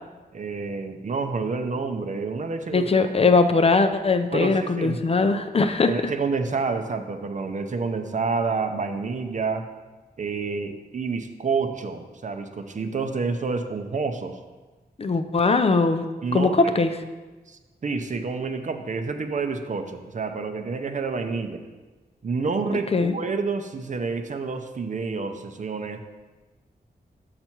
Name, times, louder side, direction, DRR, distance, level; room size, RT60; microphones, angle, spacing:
voice 1, 0.3-2.9 4.3-5.0 5.8-9.6 10.2-14.4 16.2-16.7 17.5-21.6 22.2-26.0, right 4 dB, 50° right, 7 dB, 0.6 m, -28 dB
voice 2, 2.7-5.9 15.0-16.1 16.3-16.9 22.9-23.1, left 4 dB, 35° left, 8 dB, 0.4 m, -20 dB
6.6 x 5.8 x 4.5 m, 1.3 s
wide cardioid pair, 110°, 17 cm